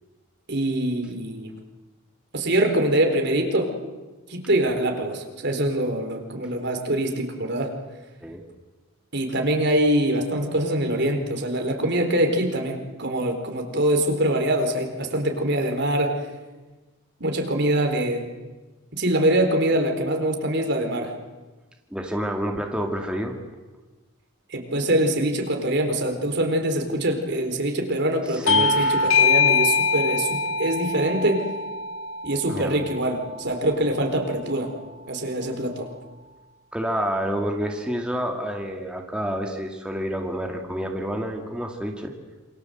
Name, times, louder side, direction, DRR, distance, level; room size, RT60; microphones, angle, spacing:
voice 1, 0.5-1.6 2.3-3.7 4.3-7.7 9.1-16.3 17.2-18.3 18.9-21.1 24.5-31.4 32.2-34.7 35.1-35.9, right 1 dB, 60° right, 4 dB, 4.3 m, -24 dB
voice 2, 21.9-23.4 28.3-29.0 32.5-32.7 36.7-42.1, equal, 5° right, 2 dB, 2.3 m, -29 dB
Bell / Doorbell, 28.5-33.5, left 4 dB, 90° left, 0.8 m, -23 dB
28.0 x 26.0 x 8.0 m, 1.2 s
head